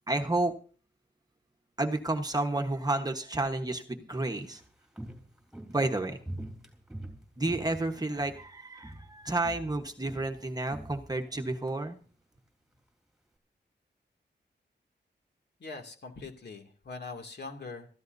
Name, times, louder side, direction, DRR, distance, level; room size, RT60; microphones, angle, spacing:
voice 1, 0.1-0.5 1.8-4.6 5.7-6.2 7.4-12.0, right 2 dB, 20° right, 4 dB, 1.2 m, -31 dB
Walk footsteps, 4.2-8.5 8.8-9.2 9.4-11.8 12.1-12.2, right 1 dB, 5° right, 3.6 m, -45 dB
voice 2, 15.6-17.9, left 3 dB, 65° left, 3 dB, 2.5 m, -42 dB
26.0 x 14.5 x 2.7 m, 0.40 s
wide cardioid pair, 150°, 19 cm